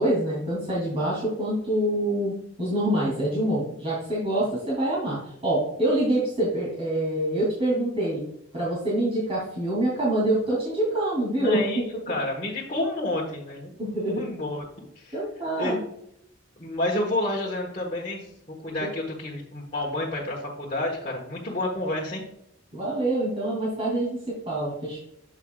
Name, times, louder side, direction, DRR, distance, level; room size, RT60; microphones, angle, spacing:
voice 1, 0.0-8.2 8.5-11.6 13.8-14.3 15.1-15.8 18.8-18.9 22.7-25.0, right 1 dB, 30° right, -7 dB, 2.8 m, -26 dB
voice 2, 11.4-13.7 14.1-14.7 14.9-15.1 15.6-15.7 16.6-18.3 18.6-22.2, left 1 dB, 35° left, -6 dB, 1.4 m, -29 dB
8.3 x 6.7 x 2.4 m, 0.74 s
head